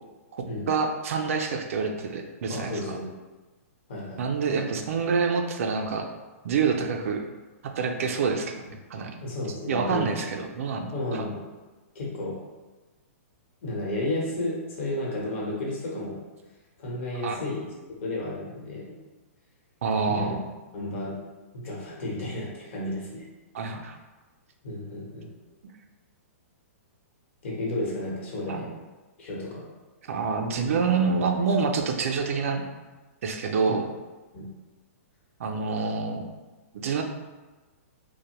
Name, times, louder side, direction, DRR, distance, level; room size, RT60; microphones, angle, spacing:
voice 1, 0.7-3.0 4.2-6.1 6.4-7.2 7.6-8.6 8.9-9.2 9.7-11.3 17.2-17.4 19.8-20.4 23.5-24.0 28.5-28.7 30.0-32.6 33.2-33.9 35.4-36.3 36.7-37.0, right 5 dB, 70° right, 4 dB, 0.4 m, -27 dB
voice 2, 2.5-3.1 3.9-4.2 9.2-10.2 10.9-11.4 11.9-12.3 13.6-16.2 16.8-17.7 18.0-18.9 20.1-20.3 20.7-21.1 21.5-23.3 24.6-25.3 27.4-28.7 29.2-29.6 33.7-33.8 34.3-34.5, left 1 dB, 55° left, -4 dB, 0.9 m, -32 dB
2.5 x 2.1 x 2.9 m, 1.2 s
hypercardioid pair, 150°, 8 cm